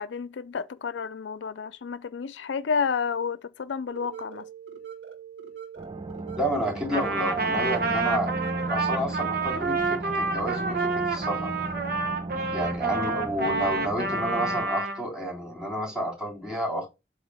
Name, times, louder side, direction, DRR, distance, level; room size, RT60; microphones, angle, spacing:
voice 1, 0.0-4.4, left 6 dB, 80° left, 0.4 m, -30 dB
sound 1, 3.9-8.9, right 8 dB, 80° right, 1.7 m, -42 dB
sound 2, 5.8-14.7, right 2 dB, 25° right, 0.5 m, -36 dB
voice 2, 6.4-8.3 8.7-11.5 12.5-16.9, right 1 dB, 5° right, 3.3 m, -30 dB
Trumpet, 6.9-15.0, right 3 dB, 55° right, 1.4 m, -28 dB
7.9 x 3.1 x 6.3 m
head